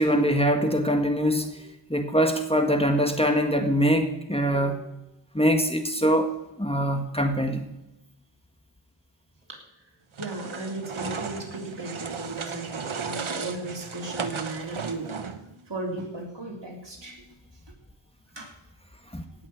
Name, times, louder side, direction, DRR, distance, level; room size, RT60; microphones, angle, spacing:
voice 1, 0.0-4.9 5.3-6.3 6.6-7.6 19.1-19.2, equal, 10° left, 5 dB, 1.7 m, -23 dB
sound 1, 10.1-15.6, right 5 dB, 85° right, 1.2 m, -35 dB
voice 2, 10.2-17.3 18.3-18.5, right 2 dB, 60° right, 0 dB, 3.7 m, -36 dB
17.5 x 6.5 x 8.7 m, 0.89 s
wide cardioid pair, 45°, 47 cm